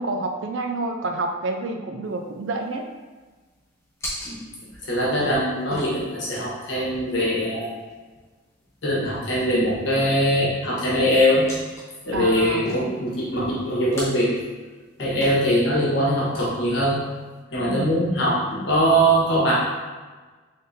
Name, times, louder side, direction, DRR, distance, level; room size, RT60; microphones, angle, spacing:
voice 1, 0.0-2.9 12.1-12.7 17.7-17.9, right 2 dB, 65° right, 4 dB, 0.4 m, -28 dB
sound 1, 2.0-17.4, left 1 dB, 15° left, 0.9 m, -41 dB
voice 2, 4.8-7.7 8.8-11.5 12.0-14.4 15.0-17.0 17.5-19.5, equal, 60° left, -6 dB, 1.1 m, -22 dB
3.8 x 3.6 x 2.6 m, 1.3 s
head